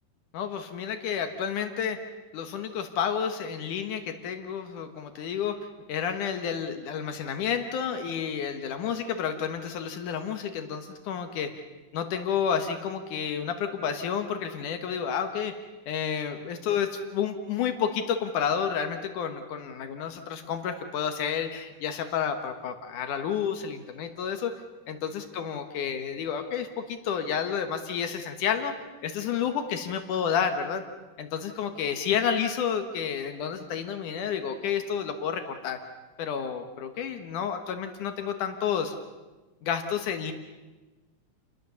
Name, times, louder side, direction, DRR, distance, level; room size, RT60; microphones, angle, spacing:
voice 1, 0.3-2.0 2.3-5.6 5.9-11.5 11.9-15.5 15.9-24.5 24.9-28.7 29.0-30.8 31.2-35.8 36.2-38.9 39.6-40.3, left 7 dB, 80° left, 7 dB, 2.8 m, -30 dB
29.5 x 21.0 x 7.0 m, 1.2 s
omnidirectional pair, 3.6 m